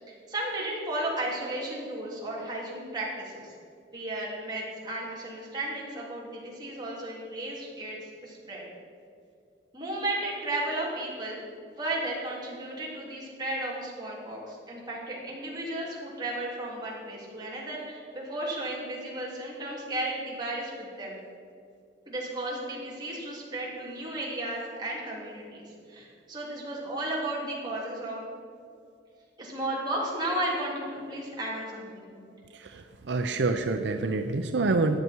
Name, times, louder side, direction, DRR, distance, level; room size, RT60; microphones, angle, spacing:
voice 1, 0.3-3.5 3.9-8.0 8.2-8.6 9.7-11.4 11.8-21.2 22.1-25.6 25.9-28.2 29.4-32.2, right 1 dB, 25° right, -5 dB, 3.3 m, -34 dB
voice 2, 32.5-35.0, right 3 dB, 80° right, 7 dB, 0.6 m, -27 dB
13.5 x 9.8 x 4.6 m, 2.4 s
head